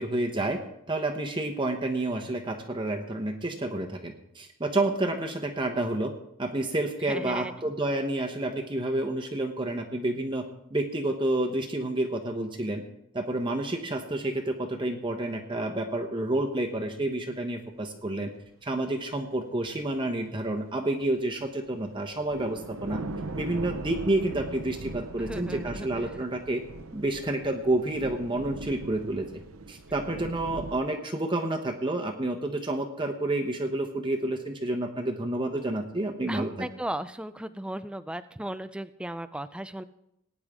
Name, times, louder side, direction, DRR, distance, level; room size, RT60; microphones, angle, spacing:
voice 1, 0.0-6.1 6.4-10.4 10.7-12.8 13.1-18.3 18.6-23.0 23.4-26.6 26.9-29.3 29.7-36.7, right 1 dB, 20° right, 3 dB, 1.0 m, -29 dB
voice 2, 7.0-7.5 25.2-25.9 36.3-39.8, right 1 dB, 5° right, 12 dB, 0.4 m, -36 dB
sound 1, 19.6-20.0 20.5-20.6 21.7-21.8 22.1-30.8, right 2 dB, 75° right, 0.8 m, -40 dB
18.5 x 9.7 x 3.6 m, 0.79 s
head